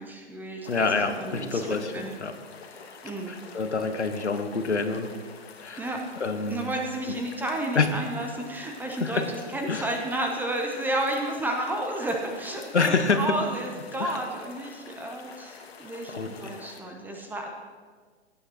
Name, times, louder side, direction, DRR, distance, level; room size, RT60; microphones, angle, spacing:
voice 1, 0.0-2.1 3.0-3.4 5.8-6.0 6.5-17.5, right 1 dB, 5° right, 2 dB, 0.6 m, -32 dB
sound 1, 0.6-16.8, left 5 dB, 65° left, 1.4 m, -47 dB
voice 2, 0.7-2.3 3.3-5.1 5.6-5.9 6.2-6.7 7.7-7.9 9.0-9.3 9.7-9.9 12.7-13.4 14.0-14.2 16.1-16.5, left 4 dB, 80° left, 7 dB, 1.1 m, -27 dB
17.0 x 8.9 x 2.9 m, 1.5 s
figure-of-eight pair, 120°, 34 cm